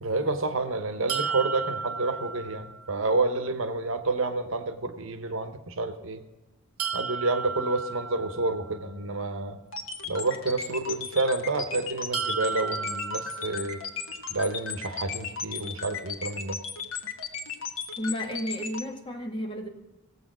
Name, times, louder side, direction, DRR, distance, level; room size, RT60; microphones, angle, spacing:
voice 1, 0.0-6.2 6.9-9.6 10.0-13.8 14.3-16.6, right 3 dB, 60° right, 9 dB, 1.0 m, -29 dB
sound 1, 1.1-3.1 6.8-8.9 12.1-14.2, right 5 dB, 85° right, 0.6 m, -34 dB
sound 2, 9.7-18.8, left 5 dB, 65° left, 1.5 m, -35 dB
voice 2, 18.0-19.7, equal, 25° left, 3 dB, 1.5 m, -32 dB
17.0 x 8.2 x 6.1 m, 1.1 s
head